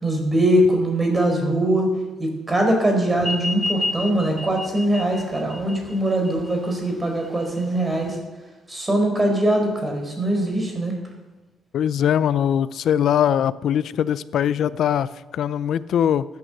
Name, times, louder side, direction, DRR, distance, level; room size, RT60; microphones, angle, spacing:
voice 1, 0.0-1.9 2.2-8.2 8.7-10.9, right 1 dB, 20° right, 3 dB, 4.6 m, -21 dB
sound 1, 3.2-8.2, left 2 dB, ahead, 1.3 m, -31 dB
voice 2, 11.7-16.3, left 9 dB, 70° left, 17 dB, 0.6 m, -21 dB
13.5 x 9.4 x 7.8 m, 1.1 s
cardioid pair, 90°, 0 cm